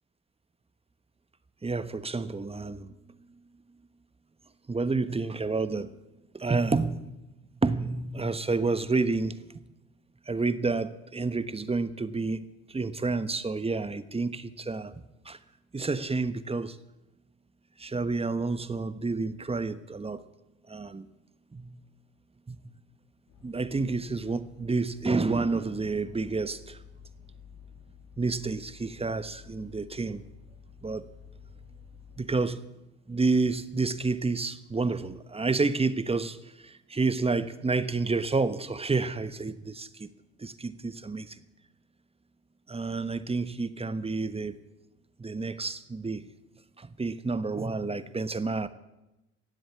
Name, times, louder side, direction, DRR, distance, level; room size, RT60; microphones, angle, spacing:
voice 1, 1.6-2.9 4.7-5.9 6.3-7.2 7.6-9.4 10.3-15.4 15.7-16.8 17.8-20.2 20.7-21.1 21.5-21.8 22.5-22.6 23.4-26.8 28.2-30.2 30.8-31.1 32.2-32.6 33.1-40.1 40.4-41.4 42.7-44.6 45.2-46.3 46.8-48.7, right 3 dB, 15° right, 1.1 m, -29 dB
sound 1, 23.3-32.4, left 6 dB, 70° left, 3.0 m, -52 dB
17.5 x 7.8 x 9.7 m
hypercardioid pair, 70°, 35 cm